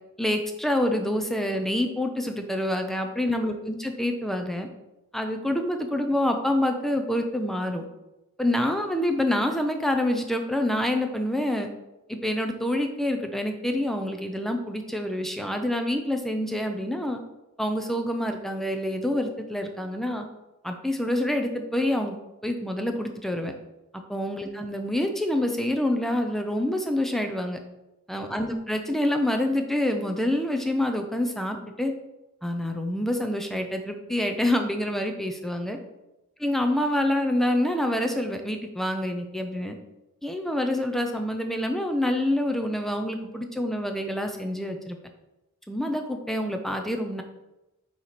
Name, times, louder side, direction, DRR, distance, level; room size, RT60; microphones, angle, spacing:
voice 1, 0.2-4.7 5.1-7.8 8.4-11.7 12.1-17.2 17.6-20.2 20.6-22.2 22.4-23.5 24.1-27.6 28.1-31.9 32.4-35.8 36.4-39.7 40.2-45.0 45.7-47.2, left 1 dB, ahead, 5 dB, 0.5 m, -27 dB
8.8 x 3.1 x 4.2 m, 0.98 s
head